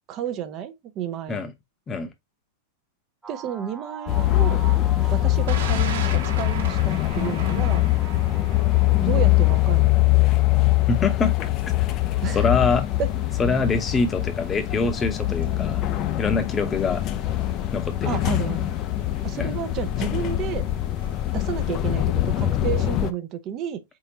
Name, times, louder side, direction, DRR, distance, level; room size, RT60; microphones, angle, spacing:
voice 1, 0.1-1.5 3.3-4.6 5.1-7.8 9.0-10.0 12.2-12.5 13.0-13.1 18.0-18.8 19.2-20.6 21.3-23.8, right 9 dB, 40° right, 0.6 m, -31 dB
sound 1, 3.2-9.8, right 6 dB, 10° right, 1.0 m, -43 dB
sound 2, 4.1-23.1, left 16 dB, 40° left, 0.4 m, -23 dB
Thunder, 5.5-21.7, right 6 dB, 75° right, 1.1 m, -42 dB
voice 2, 10.9-11.3 12.3-12.9 13.4-15.9 16.2-17.0 17.7-18.2 19.4-19.6, left 4 dB, 20° left, 0.8 m, -24 dB
4.0 x 3.7 x 2.8 m
hypercardioid pair, 125°, 0 cm